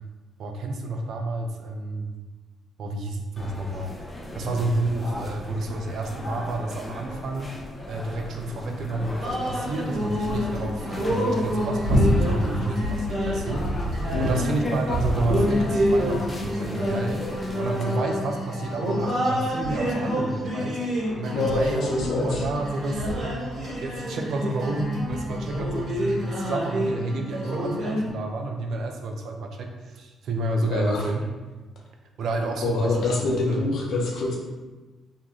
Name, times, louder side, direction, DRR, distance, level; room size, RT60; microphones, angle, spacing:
voice 1, 0.4-2.0 2.8-3.9 4.3-7.5 7.9-13.6 14.2-17.2 17.5-20.8 21.1-21.9 22.2-23.5 23.8-31.2 32.2-33.6, right 2 dB, 70° right, 3 dB, 0.4 m, -30 dB
sound 1, 3.4-17.9, left 1 dB, 20° left, 0.5 m, -36 dB
sound 2, 9.2-28.1, equal, 50° right, 1.2 m, -27 dB
voice 2, 14.1-14.4 21.3-22.5 30.6-31.0 32.6-34.4, left 2 dB, 70° left, -1 dB, 0.6 m, -26 dB
2.5 x 2.3 x 2.9 m, 1.2 s
cardioid pair, 90°, 0 cm